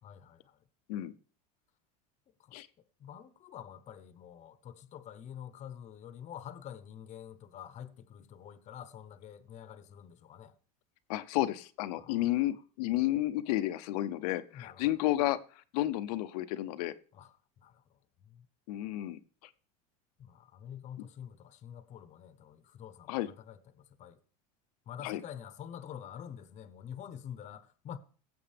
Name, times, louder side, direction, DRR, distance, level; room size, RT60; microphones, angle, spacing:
voice 1, 0.0-0.6 2.3-2.6 3.0-10.5 12.0-12.6 14.5-14.9 17.1-18.5 20.2-24.2 24.9-28.0, left 9 dB, 35° left, 0.9 m, -47 dB
voice 2, 11.1-15.4 15.7-16.9 18.7-19.2 23.1-23.3 25.0-25.2, left 15 dB, 75° left, 0.7 m, -31 dB
18.0 x 7.9 x 3.4 m
supercardioid pair, 120°, 20 cm